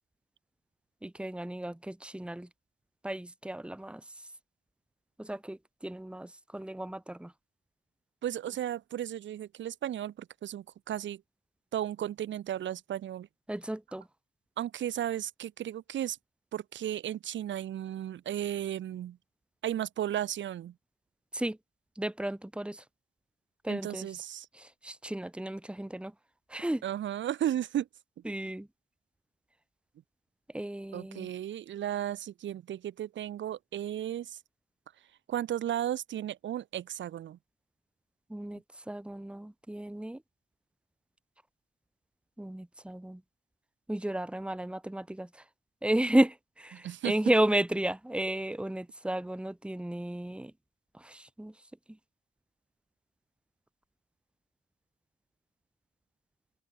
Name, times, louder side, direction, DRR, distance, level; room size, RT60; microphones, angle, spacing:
voice 1, 1.0-2.5 3.0-4.0 5.2-7.3 13.5-14.0 21.3-21.6 22.0-22.8 23.6-24.1 24.5-26.1 26.5-26.8 28.3-28.7 30.5-31.3 38.3-38.6 38.9-40.2 42.4-43.2 43.9-45.3 45.8-50.5 51.0-51.5, right 1 dB, 5° right, 2.1 m, -33 dB
voice 2, 8.2-11.2 11.7-13.3 14.6-16.2 16.5-19.2 19.6-20.7 23.7-24.5 26.8-27.9 30.9-34.4 35.3-37.4 46.7-47.1, right 11 dB, 70° right, 2.8 m, -34 dB
cardioid pair, 90°, 20 cm